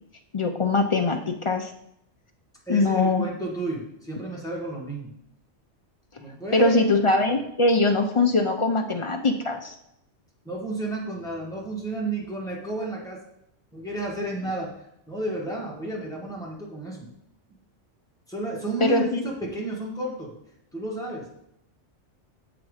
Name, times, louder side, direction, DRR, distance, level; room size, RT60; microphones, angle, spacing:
voice 1, 0.3-1.7 2.7-3.2 6.5-9.7 18.8-19.2, left 2 dB, 55° left, 4 dB, 0.3 m, -22 dB
voice 2, 2.7-5.1 6.2-6.8 10.4-13.2 13.7-14.8 15.1-17.1 18.3-20.4 20.7-21.3, right 2 dB, 5° left, -4 dB, 1.7 m, -32 dB
7.2 x 4.0 x 4.9 m, 0.76 s
omnidirectional pair, 1.2 m